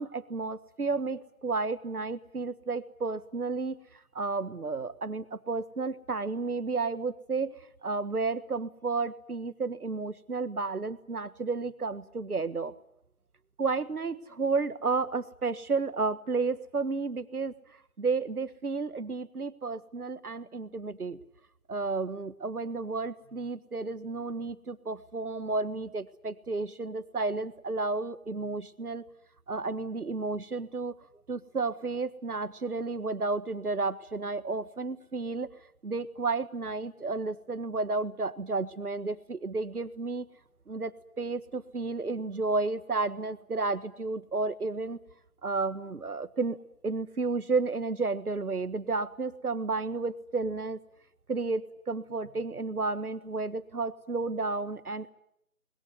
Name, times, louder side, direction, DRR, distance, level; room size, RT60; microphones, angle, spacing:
voice 1, 0.0-12.7 13.6-17.5 18.0-21.2 21.7-29.0 29.5-30.9 31.3-35.5 35.8-40.2 40.7-45.0 45.4-46.6 46.8-50.8 51.3-55.1, right 3 dB, 85° right, 14 dB, 1.6 m, -32 dB
21.0 x 20.5 x 9.9 m, 0.77 s
figure-of-eight pair, 180°, 44 cm